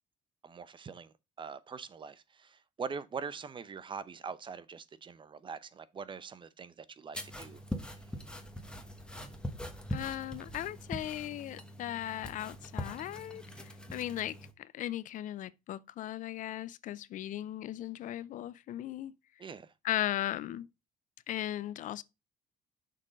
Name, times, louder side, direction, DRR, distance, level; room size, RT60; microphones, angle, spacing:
voice 1, 0.4-7.6 14.0-14.1 19.4-19.7, right 5 dB, 35° right, 0.6 m, -43 dB
sound 1, 7.1-14.5, equal, 5° left, 1.2 m, -42 dB
voice 2, 9.9-19.1 19.8-20.7 21.3-22.0, left 12 dB, 60° left, 0.4 m, -37 dB
6.6 x 3.7 x 5.1 m
cardioid pair, 90°, 15 cm